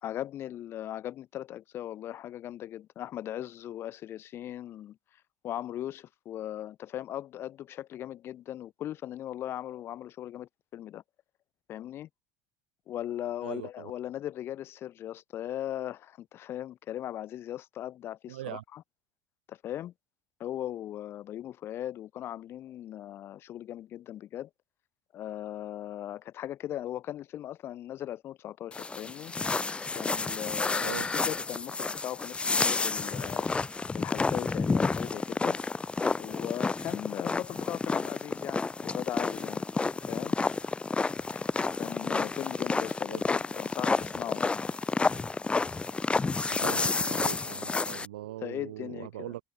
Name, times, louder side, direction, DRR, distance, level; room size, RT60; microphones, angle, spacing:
voice 1, 0.0-5.0 5.4-11.0 11.7-12.1 12.9-18.8 19.5-19.9 20.4-24.5 25.1-29.3 29.9-33.5 33.9-35.6 36.1-39.7 40.0-40.4 41.3-41.5 41.8-44.6 48.4-49.3, left 12 dB, 55° left, 3.1 m, -38 dB
voice 2, 13.4-13.9 18.3-18.6 30.8-31.0 43.1-43.2 46.5-49.4, right 15 dB, 80° right, 7.6 m, -40 dB
sound 1, 28.7-48.1, left 4 dB, 20° left, 3.7 m, -30 dB
hypercardioid pair, 65°, 5 cm